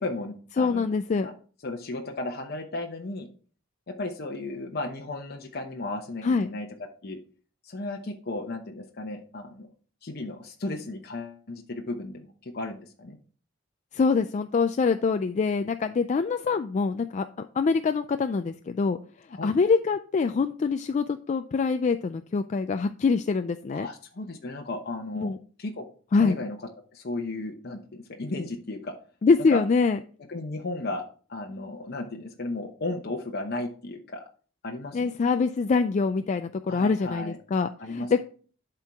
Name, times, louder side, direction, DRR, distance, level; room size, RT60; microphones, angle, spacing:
voice 1, 0.0-0.8 1.2-1.3 1.6-3.3 3.9-6.7 7.0-7.2 7.6-9.7 10.0-13.2 19.3-19.5 23.7-25.3 25.6-25.8 26.2-26.6 26.9-28.9 29.4-29.6 30.3-34.2 34.6-35.1 36.7-37.4 37.8-38.1, left 2 dB, 55° left, 2 dB, 0.8 m, -35 dB
voice 2, 0.6-1.3 6.2-6.5 13.9-19.0 19.4-23.9 25.1-25.4 26.1-26.4 29.2-30.0 34.9-38.2, left 4 dB, 35° left, 8 dB, 0.3 m, -24 dB
11.5 x 4.5 x 3.5 m, 0.41 s
head